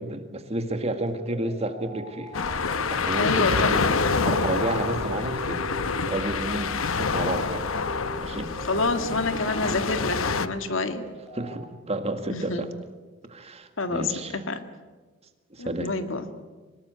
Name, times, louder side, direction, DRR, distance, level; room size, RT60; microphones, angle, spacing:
voice 1, 0.0-2.3 2.9-3.9 4.2-5.6 6.0-7.8 8.2-8.5 11.3-12.7 13.3-14.4 15.5-15.9, right 1 dB, 30° right, 7 dB, 2.0 m, -31 dB
sound 1, 1.0-11.5, right 2 dB, 5° left, 6.1 m, -43 dB
sound 2, 2.3-10.5, left 4 dB, 90° left, 1.0 m, -27 dB
voice 2, 3.2-4.0 8.6-11.1 12.3-12.7 13.8-14.6 15.6-16.3, left 3 dB, 70° left, 8 dB, 1.9 m, -28 dB
sound 3, 3.5-9.5, left 1 dB, 55° right, 2.6 m, -39 dB
25.0 x 19.0 x 9.4 m, 1.3 s
head